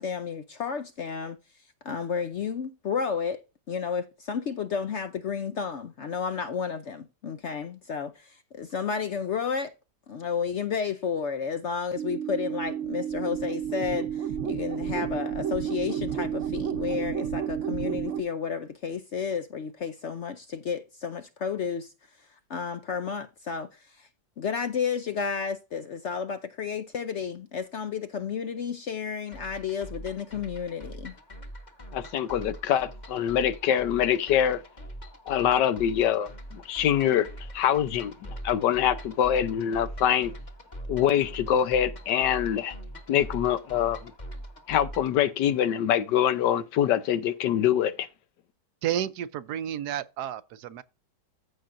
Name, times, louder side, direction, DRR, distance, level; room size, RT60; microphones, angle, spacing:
voice 1, 0.0-1.4 1.8-3.4 3.7-9.7 10.1-24.1 24.4-31.1, left 6 dB, 65° left, 0.7 m, -32 dB
sound 1, 12.0-18.2, right 9 dB, 55° right, 1.0 m, -31 dB
sound 2, 29.3-45.2, right 1 dB, 25° left, 1.4 m, -42 dB
voice 2, 31.9-34.6 35.3-37.3 37.5-40.3 40.9-42.7 43.1-44.1 44.7-48.1, left 10 dB, 85° left, 1.4 m, -24 dB
voice 3, 48.8-50.8, right 10 dB, 75° right, 1.2 m, -31 dB
14.5 x 5.8 x 2.6 m
omnidirectional pair, 1.8 m